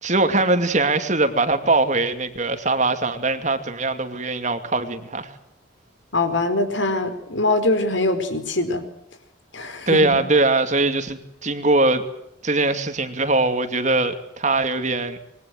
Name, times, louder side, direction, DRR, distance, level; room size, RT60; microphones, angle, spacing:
voice 1, 0.0-5.3 9.9-12.0 12.4-15.2, right 2 dB, 35° right, 8 dB, 2.6 m, -21 dB
voice 2, 6.1-8.8 9.5-10.2, left 2 dB, 70° left, 9 dB, 4.6 m, -23 dB
26.5 x 22.5 x 7.9 m, 0.77 s
head